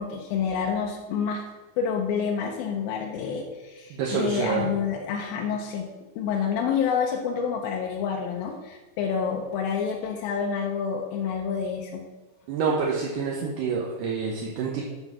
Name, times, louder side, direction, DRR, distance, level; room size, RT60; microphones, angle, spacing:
voice 1, 0.0-1.4 1.8-5.9 6.2-12.0, left 6 dB, 85° left, 1 dB, 2.6 m, -28 dB
voice 2, 3.9-4.6 12.5-14.8, right 6 dB, 70° right, -2 dB, 2.4 m, -27 dB
12.0 x 4.6 x 6.1 m, 1.2 s
omnidirectional pair, 4.1 m